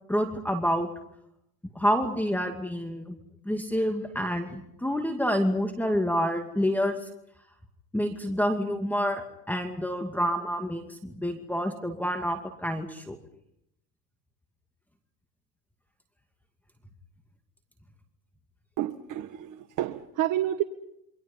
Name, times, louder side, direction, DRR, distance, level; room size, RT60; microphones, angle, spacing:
voice 1, 0.1-0.9 1.8-3.2 3.5-6.9 7.9-13.2, equal, 5° left, 5 dB, 2.3 m, -28 dB
voice 2, 18.8-20.6, right 12 dB, 50° right, 9 dB, 1.5 m, -29 dB
28.5 x 25.0 x 5.5 m, 0.78 s
supercardioid pair, 110°, 41 cm